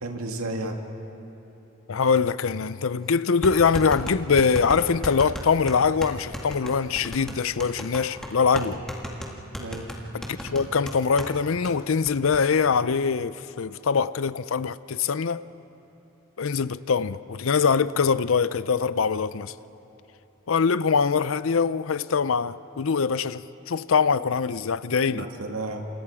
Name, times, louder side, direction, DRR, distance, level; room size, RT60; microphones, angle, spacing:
voice 1, 0.0-0.8 8.5-8.8 9.6-9.9 25.1-25.9, right 2 dB, 90° right, 2.0 m, -33 dB
voice 2, 1.9-8.8 10.1-15.4 16.4-19.5 20.5-25.3, left 5 dB, 65° left, 0.5 m, -23 dB
sound 1, 3.4-11.3 11.6-11.7 12.1-12.4, equal, 5° left, 2.1 m, -35 dB
28.5 x 28.0 x 4.9 m
head